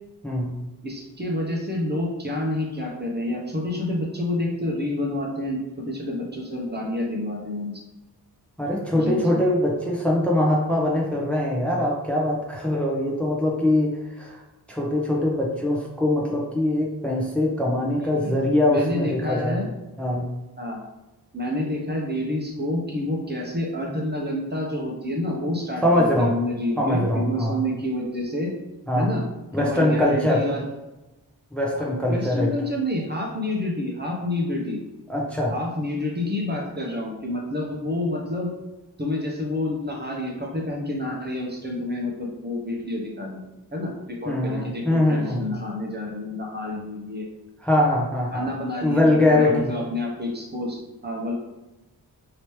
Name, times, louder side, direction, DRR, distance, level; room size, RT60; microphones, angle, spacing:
voice 1, 0.8-7.7 8.9-9.4 18.2-18.4 18.7-19.7 20.6-20.8 21.3-28.5 28.9-29.3 29.6-30.6 31.7-34.8 35.5-38.5 39.0-43.4 43.7-47.3 48.3-51.3, left 1 dB, 25° right, -1 dB, 0.8 m, -28 dB
voice 2, 8.6-14.4 14.7-19.6 20.0-20.3 25.8-26.3 26.8-27.6 28.9-29.1 29.5-30.4 31.5-32.5 35.1-35.5 44.3-45.4 47.6-48.5 48.8-49.7, left 1 dB, 5° left, -3 dB, 0.8 m, -22 dB
3.0 x 2.9 x 3.1 m, 1.0 s
cardioid pair, 55°, 38 cm